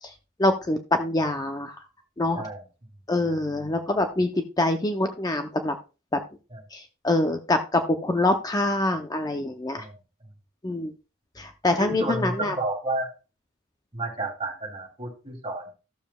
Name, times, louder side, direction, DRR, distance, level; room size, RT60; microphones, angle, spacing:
voice 1, 0.0-1.9 2.2-2.4 3.1-5.8 6.1-6.2 6.7-9.9 10.6-10.9 11.4-12.6, left 2 dB, 20° left, 6 dB, 0.5 m, -25 dB
voice 2, 11.8-13.1 13.9-15.7, right 2 dB, 30° right, -1 dB, 2.7 m, -31 dB
14.0 x 7.2 x 2.2 m, 0.32 s
head